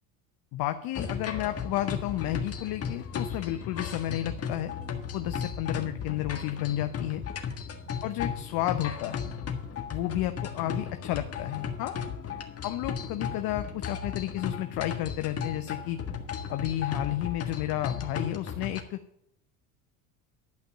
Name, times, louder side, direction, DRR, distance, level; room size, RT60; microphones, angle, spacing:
voice 1, 0.5-4.7 5.1-7.2 8.0-9.2 9.9-12.0 12.6-16.0 16.5-19.0, left 14 dB, 60° left, 9 dB, 0.8 m, -32 dB
sound 1, 0.9-18.8, left 6 dB, 35° left, 1.7 m, -35 dB
11.5 x 5.2 x 8.8 m, 0.76 s
hypercardioid pair, 85°, 42 cm